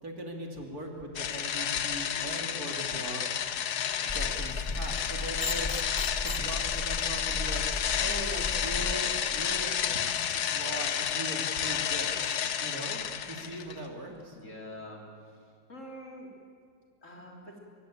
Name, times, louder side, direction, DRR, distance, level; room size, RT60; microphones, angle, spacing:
voice 1, 0.0-3.4 4.0-7.7 8.0-14.4, right 1 dB, 60° right, 2 dB, 3.4 m, -40 dB
sound 1, 1.2-13.8, left 9 dB, 70° left, 1.5 m, -31 dB
sound 2, 4.1-8.9, left 2 dB, 25° left, 0.6 m, -36 dB
voice 2, 14.3-15.4 15.7-16.3 17.0-17.6, equal, 45° left, 1 dB, 3.9 m, -45 dB
24.0 x 22.5 x 8.9 m, 2.3 s
omnidirectional pair, 1.8 m